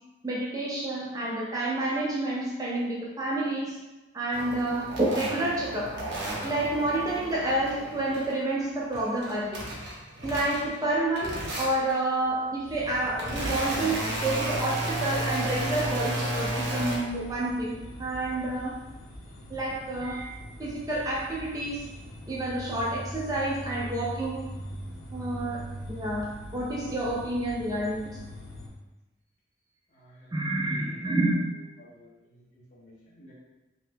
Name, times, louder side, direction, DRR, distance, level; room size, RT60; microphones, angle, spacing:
voice 1, 0.2-3.8 4.1-5.9 6.4-9.6 10.2-18.8 19.5-20.3 20.6-21.9 22.3-24.5 25.1-25.6 25.9-28.1 30.3-31.3, right 2 dB, 20° right, -4 dB, 0.3 m, -29 dB
sound 1, 4.3-8.4 8.8-10.8 11.2-12.0 12.7-17.0, right 1 dB, 75° right, 0.8 m, -33 dB
sound 2, 12.7-28.7, equal, 80° left, 0.6 m, -42 dB
voice 2, 29.9-30.3 30.6-31.1 31.8-33.3, equal, 40° left, -5 dB, 0.8 m, -52 dB
2.7 x 2.2 x 3.3 m, 1.0 s
head